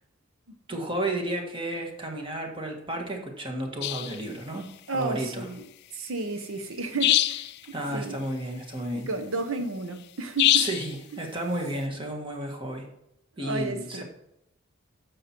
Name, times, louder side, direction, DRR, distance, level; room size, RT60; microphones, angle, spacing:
voice 1, 0.7-4.6 4.9-5.4 7.7-9.1 10.6-12.9 13.4-14.0, right 1 dB, 25° right, 2 dB, 1.6 m, -32 dB
sound 1, 3.8-4.2 7.0-7.6 10.4-10.9, left 13 dB, 55° left, 0.3 m, -23 dB
voice 2, 4.9-5.6 5.9-7.5 7.9-8.2 9.0-10.7 13.4-14.0, right 3 dB, 80° right, 8 dB, 0.8 m, -32 dB
10.0 x 7.1 x 4.5 m, 0.82 s
head